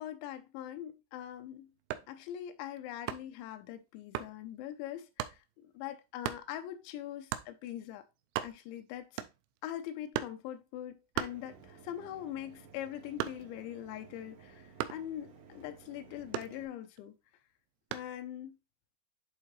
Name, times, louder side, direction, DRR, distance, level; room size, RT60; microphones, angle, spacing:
voice 1, 0.0-1.7 2.1-8.0 8.4-9.2 9.6-17.2 17.9-18.6, left 11 dB, 85° left, 3.0 m, -42 dB
sound 1, 1.8-2.2 3.1-3.4 4.1-4.4 5.2-5.4 6.2-6.5 7.3-7.5 8.0-8.1 8.2-8.8 9.2-9.6 10.1-10.5 11.1-11.9 12.3-13.7 14.8-15.1 16.3-17.0 17.9-18.2, right 13 dB, 85° right, 2.8 m, -38 dB
Mechanisms, 11.2-16.7, right 6 dB, 65° right, 2.2 m, -56 dB
10.5 x 3.7 x 3.1 m
omnidirectional pair, 5.1 m